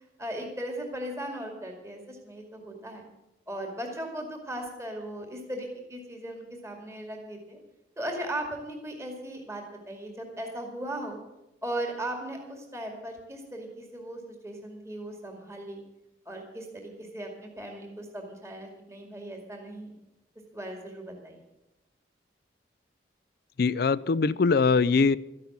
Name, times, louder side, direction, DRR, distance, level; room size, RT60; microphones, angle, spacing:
voice 1, 0.2-3.0 3.5-7.6 8.0-11.2 11.6-15.8 16.3-20.0 20.5-21.4, right 1 dB, 15° right, 2 dB, 2.2 m, -37 dB
voice 2, 23.6-25.2, left 4 dB, 60° left, 19 dB, 0.4 m, -22 dB
13.5 x 11.5 x 7.3 m, 0.95 s
head